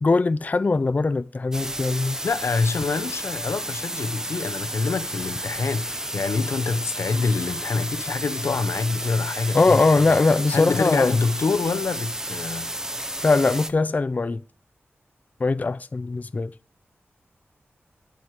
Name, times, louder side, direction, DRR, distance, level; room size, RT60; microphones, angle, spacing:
voice 1, 0.0-2.2 9.5-11.2 13.2-14.4 15.4-16.5, left 3 dB, 35° left, 0.4 m, -21 dB
sound 1, 1.5-13.7, right 1 dB, 10° right, 0.9 m, -32 dB
voice 2, 2.2-10.2 10.5-12.7 15.6-15.7, left 4 dB, 85° left, 0.9 m, -26 dB
9.4 x 7.9 x 4.8 m
wide cardioid pair, 100°, 5 cm